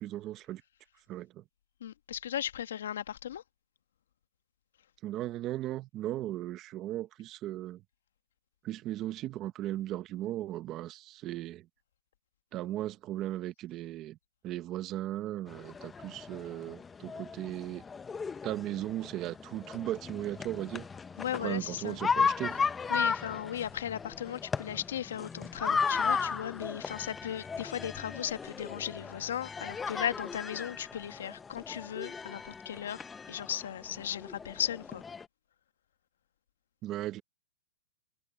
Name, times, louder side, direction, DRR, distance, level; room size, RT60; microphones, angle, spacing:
voice 1, 0.0-0.6 1.1-1.4 5.0-7.8 8.6-11.7 12.5-14.2 14.4-17.8 18.4-20.9 21.4-22.6 36.8-37.2, right 14 dB, 30° right, 1.1 m, -37 dB
voice 2, 1.8-3.4 21.2-22.0 22.9-35.0, left 10 dB, 75° left, 1.3 m, -36 dB
sound 1, 15.5-35.3, left 5 dB, 10° left, 0.8 m, -36 dB
hypercardioid pair, 150°, 0 cm